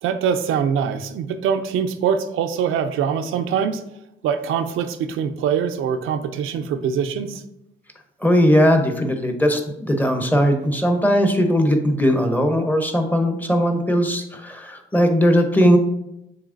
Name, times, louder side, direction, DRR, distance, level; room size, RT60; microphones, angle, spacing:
voice 1, 0.0-3.8 4.2-7.4, right 7 dB, 80° right, 8 dB, 0.4 m, -23 dB
voice 2, 8.2-15.8, equal, 10° left, 5 dB, 0.7 m, -18 dB
7.0 x 3.1 x 2.5 m, 0.85 s
cardioid pair, 100°, 21 cm